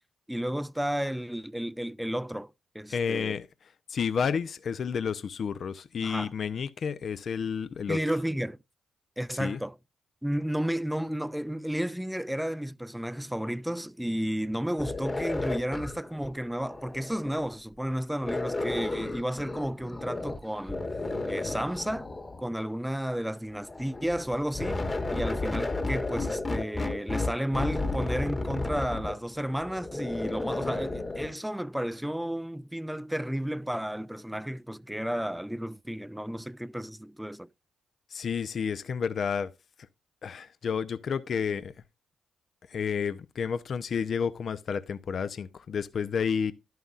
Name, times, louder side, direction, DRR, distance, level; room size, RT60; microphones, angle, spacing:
voice 1, 0.3-3.4 6.0-6.3 7.9-8.6 9.2-9.8 10.2-20.8 21.3-22.1 22.4-24.8 25.1-37.5, equal, 5° right, 0.4 m, -32 dB
voice 2, 2.9-3.5 3.9-8.0 9.4-9.6 38.1-39.5 40.2-41.7 42.7-46.5, left 6 dB, 55° left, 0.6 m, -30 dB
sound 1, 14.8-17.5 18.2-20.4 20.7-22.5 23.5-31.3, left 2 dB, 30° left, 1.4 m, -33 dB
11.0 x 9.2 x 2.4 m
supercardioid pair, 55°, 0 cm